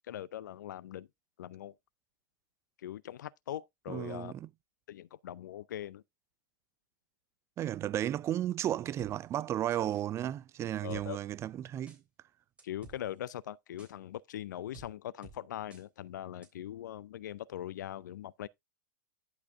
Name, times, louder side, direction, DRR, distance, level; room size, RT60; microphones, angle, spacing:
voice 1, 0.1-1.1 1.4-1.7 2.8-4.3 4.9-6.0 10.8-11.2 12.6-18.5, left 12 dB, 70° left, 0.5 m, -41 dB
voice 2, 3.9-4.5 7.6-12.0, right 12 dB, 25° right, 0.4 m, -34 dB
sound 1, 9.0-9.1 9.7-10.1 10.9-11.0 11.9-12.0 12.6-13.0 13.8-13.9 14.7-14.9 15.2-15.4 15.7-15.8 16.4-16.5, right 4 dB, 10° right, 3.4 m, -52 dB
11.0 x 4.8 x 3.5 m
hypercardioid pair, 95°, 10 cm